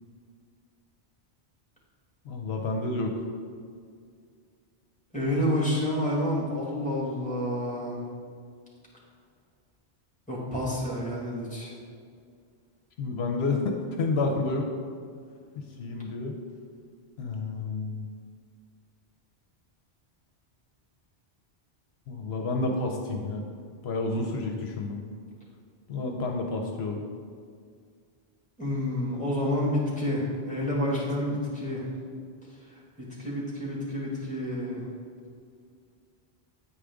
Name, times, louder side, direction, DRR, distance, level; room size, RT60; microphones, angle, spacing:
voice 1, 2.3-3.3 13.0-14.7 15.6-16.3 17.2-18.1 22.1-23.4 23.8-25.0 25.9-27.0 31.3-31.4, left 3 dB, 75° left, 2 dB, 0.9 m, -30 dB
voice 2, 5.1-8.0 10.3-11.7 28.6-31.8 33.0-34.8, left 1 dB, 5° left, -5 dB, 1.7 m, -29 dB
8.6 x 4.9 x 3.5 m, 2.2 s
omnidirectional pair, 1.1 m